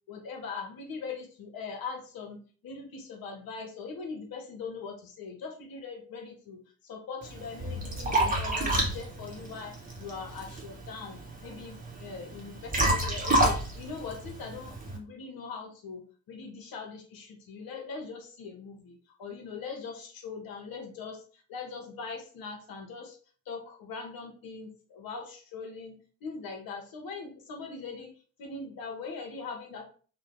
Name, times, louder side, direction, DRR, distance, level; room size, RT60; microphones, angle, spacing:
voice 1, 0.1-23.2 23.5-26.0 26.2-28.1 28.4-29.9, left 5 dB, 45° left, 2 dB, 0.9 m, -41 dB
Liquid, 7.2-15.0, right 1 dB, 15° right, 1.1 m, -30 dB
2.7 x 2.2 x 3.6 m, 0.41 s
figure-of-eight pair, 45°, 48 cm